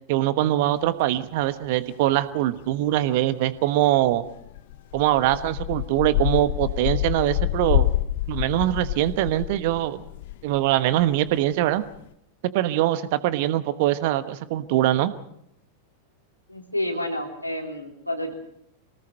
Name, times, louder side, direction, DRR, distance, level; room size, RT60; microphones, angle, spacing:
voice 1, 0.1-4.2 4.9-7.9 8.3-10.0 10.4-11.8 12.5-15.1, right 14 dB, 50° right, 14 dB, 1.1 m, -23 dB
sound 1, 4.0-11.4 11.9-12.0, left 15 dB, 55° left, 0.7 m, -27 dB
voice 2, 16.5-18.3, left 1 dB, 90° left, 3 dB, 3.4 m, -29 dB
25.0 x 19.0 x 6.5 m, 0.76 s
figure-of-eight pair, 90°, 0 cm